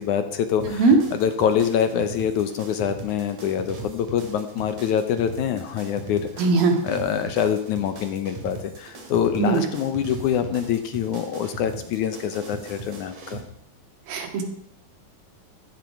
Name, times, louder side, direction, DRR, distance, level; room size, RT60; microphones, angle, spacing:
voice 1, 0.0-6.4 6.8-13.4, left 8 dB, 70° left, 9 dB, 2.1 m, -25 dB
sound 1, 0.6-13.4, right 3 dB, 55° right, 3.8 m, -39 dB
voice 2, 0.7-1.0 6.4-6.8 9.4-9.6 14.1-14.4, right 3 dB, 85° right, 4 dB, 3.9 m, -19 dB
15.0 x 12.5 x 6.0 m, 0.70 s
omnidirectional pair, 4.1 m